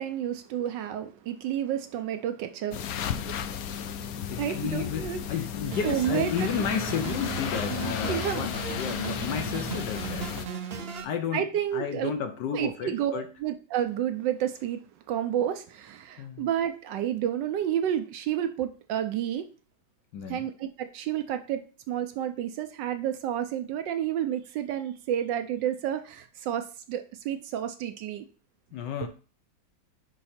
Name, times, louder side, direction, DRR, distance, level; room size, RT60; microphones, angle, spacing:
voice 1, 0.0-2.9 3.2-3.4 4.3-5.5 5.8-6.5 8.1-8.7 11.3-12.1 12.5-14.8 15.1-19.4 20.3-28.3, right 10 dB, 75° right, 1.2 m, -30 dB
sound 1, 2.7-10.5, left 8 dB, 85° left, 0.8 m, -34 dB
voice 2, 4.3-10.3 11.0-13.3 16.2-16.5 20.1-20.5 28.7-29.1, left 8 dB, 70° left, 1.2 m, -32 dB
sound 2, 5.7-11.0, right 4 dB, 60° right, 0.6 m, -36 dB
5.3 x 4.8 x 4.2 m
omnidirectional pair, 2.2 m